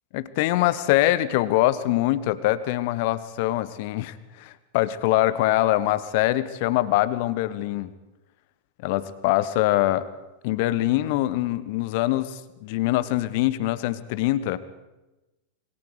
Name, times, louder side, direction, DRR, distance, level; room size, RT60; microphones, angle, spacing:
voice 1, 0.1-7.9 8.8-10.0 10.4-14.6, left 15 dB, 50° left, 15 dB, 1.3 m, -23 dB
27.0 x 23.0 x 5.0 m, 1.0 s
figure-of-eight pair, 90°, 0 cm